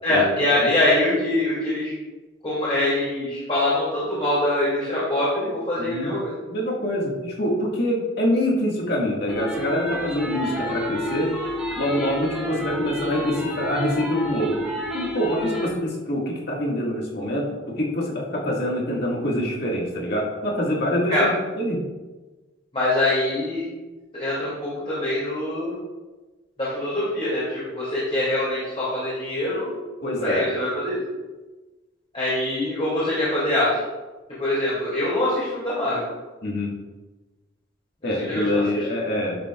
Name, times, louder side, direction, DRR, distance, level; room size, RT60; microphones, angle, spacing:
voice 1, 0.0-1.9 2.4-6.3 21.1-21.3 22.7-23.6 24.1-25.7 26.6-29.8 30.1-31.0 32.1-33.7 34.4-36.0 38.2-38.6, left 1 dB, 30° left, -10 dB, 2.8 m, -24 dB
voice 2, 5.8-6.1 6.5-11.3 11.8-14.5 14.9-17.4 17.8-21.8 30.0-30.4 36.4-36.7 38.0-39.4, left 1 dB, 55° left, -3 dB, 2.0 m, -25 dB
sound 1, 9.3-15.7, left 1 dB, 5° right, 1.1 m, -29 dB
10.5 x 7.6 x 2.5 m, 1.2 s
head